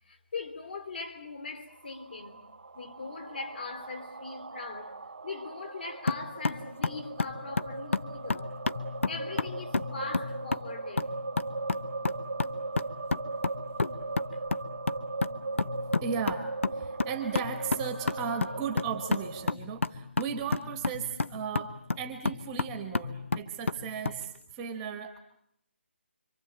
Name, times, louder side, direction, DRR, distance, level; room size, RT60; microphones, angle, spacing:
voice 1, 0.0-2.5 2.7-8.6 9.1-11.2 14.3-14.4, left 4 dB, 50° left, 3.6 m, -41 dB
sound 1, 1.7-19.5, right 3 dB, 75° right, 1.0 m, -39 dB
sound 2, 6.1-24.2, left 3 dB, 90° left, 1.1 m, -32 dB
voice 2, 15.5-25.2, right 7 dB, 10° right, 1.2 m, -36 dB
27.0 x 25.0 x 8.8 m
hypercardioid pair, 175°, 7 cm